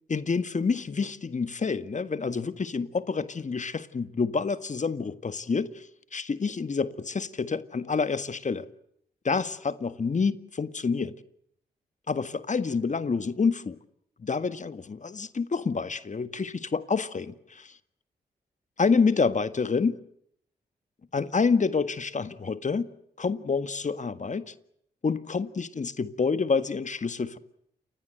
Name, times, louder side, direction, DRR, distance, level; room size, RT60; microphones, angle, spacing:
voice 1, 0.1-8.7 9.2-11.1 12.1-13.8 14.2-17.8 18.8-20.0 21.1-22.9 23.2-24.5 25.0-27.4, left 5 dB, 45° left, 1.7 m, -28 dB
29.0 x 22.5 x 7.9 m
supercardioid pair, 50°, 17 cm